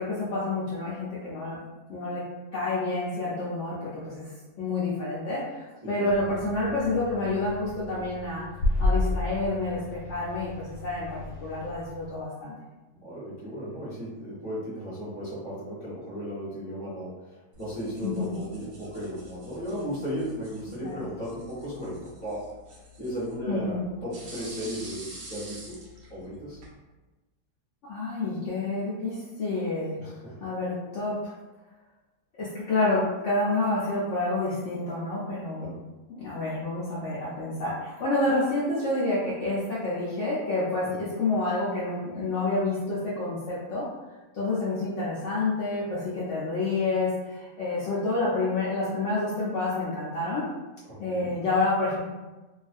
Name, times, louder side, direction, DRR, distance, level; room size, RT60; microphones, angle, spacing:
voice 1, 0.0-2.2 2.5-4.3 4.6-8.4 8.8-12.5 18.0-18.4 20.8-20.9 23.5-23.8 27.8-30.0 30.4-31.3 32.4-35.7 36.2-43.9 44.3-50.5 51.0-52.0, left 2 dB, 65° left, -8 dB, 0.8 m, -28 dB
sound 1, 6.1-12.2, left 2 dB, 85° left, 1.2 m, -32 dB
voice 2, 12.9-22.4 23.0-25.8 26.1-26.6 30.0-30.5 35.6-35.8 40.9-41.0 50.9-51.3, equal, 20° right, -9 dB, 0.7 m, -36 dB
sound 2, 17.5-26.7, equal, 65° right, 0.5 m, -47 dB
2.4 x 2.4 x 2.5 m, 1.1 s
omnidirectional pair, 1.7 m